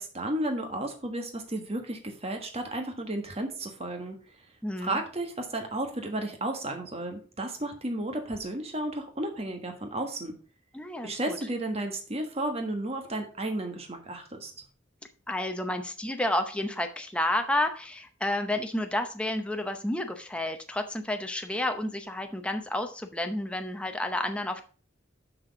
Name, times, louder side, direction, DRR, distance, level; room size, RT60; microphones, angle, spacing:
voice 1, 0.0-4.2 4.8-10.4 11.0-14.5, right 1 dB, 30° right, 4 dB, 1.4 m, -33 dB
voice 2, 4.6-5.0 10.7-11.4 15.3-24.6, left 1 dB, 5° left, 5 dB, 0.7 m, -30 dB
6.3 x 6.0 x 4.8 m, 0.38 s
head